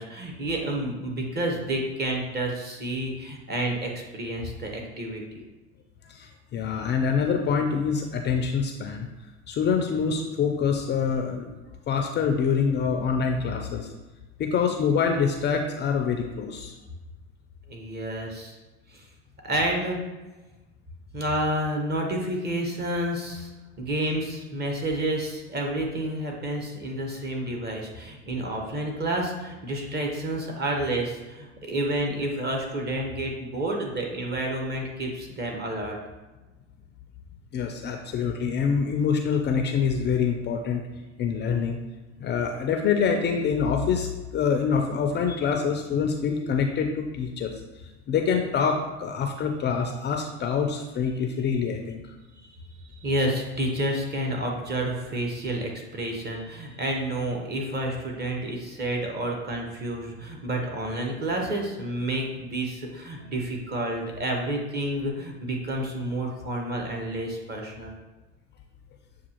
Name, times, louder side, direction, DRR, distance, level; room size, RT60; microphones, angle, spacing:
voice 1, 0.0-5.4 17.7-18.6 18.9-19.0 19.4-20.0 21.1-23.5 23.8-36.0 53.0-67.9, right 1 dB, 30° right, 1 dB, 1.1 m, -29 dB
voice 2, 6.1-9.1 9.5-11.5 11.9-13.9 14.4-16.7 37.5-40.8 41.2-41.8 42.2-44.1 44.3-47.5 48.1-52.0, left 6 dB, 35° left, 4 dB, 0.4 m, -25 dB
7.1 x 2.4 x 2.9 m, 1.2 s
hypercardioid pair, 95°, 32 cm